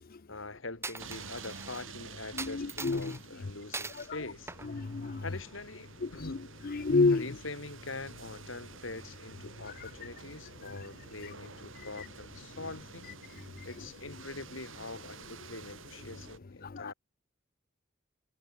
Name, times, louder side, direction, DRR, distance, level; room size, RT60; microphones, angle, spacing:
voice 1, 0.3-4.5 5.2-6.4 7.0-13.3 13.6-16.9, left 3 dB, 75° left, 3.9 m, -44 dB
Coin (dropping), 0.8-1.9 2.4-3.2 3.7-4.1 4.5-5.6, right 3 dB, 15° right, 2.1 m, -42 dB
sound 1, 1.0-16.4, right 4 dB, 75° right, 7.6 m, -50 dB
voice 2, 2.4-3.2 4.7-5.2 6.0-6.4 6.6-7.2 16.6-16.9, left 3 dB, 45° left, 0.6 m, -29 dB
head